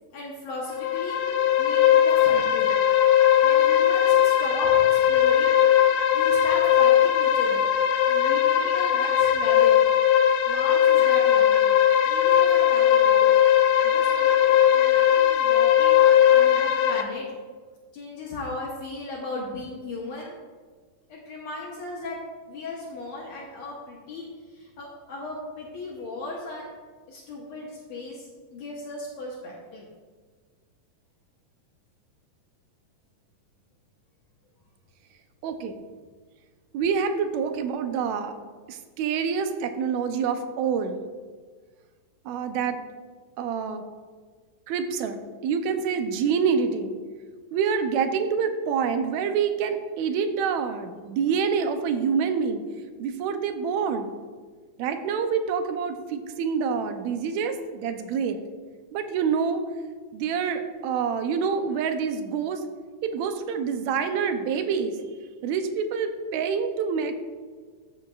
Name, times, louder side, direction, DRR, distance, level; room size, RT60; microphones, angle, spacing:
voice 1, 0.1-1.2 1.6-2.7 3.4-5.6 5.9-7.7 8.1-9.8 10.5-11.7 12.0-13.3 13.8-17.3 17.9-20.3 21.1-22.2 22.5-26.7 27.1-29.9, left 2 dB, 65° left, -3 dB, 2.1 m, -36 dB
sound 1, 0.7-17.0, left 10 dB, 85° left, 2.1 m, -19 dB
voice 2, 35.4-35.8 36.7-38.3 38.7-41.0 42.2-42.8 43.4-43.8 44.7-47.0 47.5-52.6 53.0-54.1 54.8-58.4 58.9-59.6 60.1-62.6 63.0-65.0 65.4-67.1, right 6 dB, 75° right, 7 dB, 1.8 m, -26 dB
14.0 x 6.7 x 2.4 m, 1.5 s
omnidirectional pair, 3.6 m